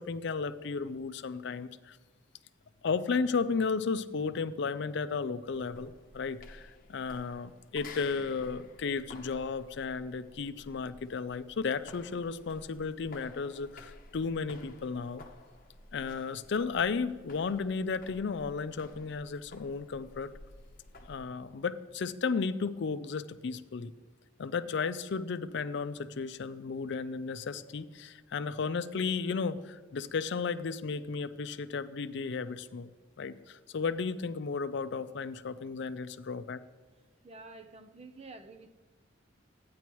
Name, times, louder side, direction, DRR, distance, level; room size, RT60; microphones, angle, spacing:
voice 1, 0.0-2.0 2.8-15.2 15.9-20.3 21.1-23.9 24.4-32.9 33.2-36.6, left 5 dB, 65° left, 13 dB, 0.5 m, -34 dB
sound 1, 5.5-21.3, left 2 dB, 50° left, 0.9 m, -53 dB
voice 2, 37.2-38.7, right 3 dB, 35° right, 7 dB, 0.6 m, -49 dB
14.0 x 9.4 x 3.0 m, 1.4 s
head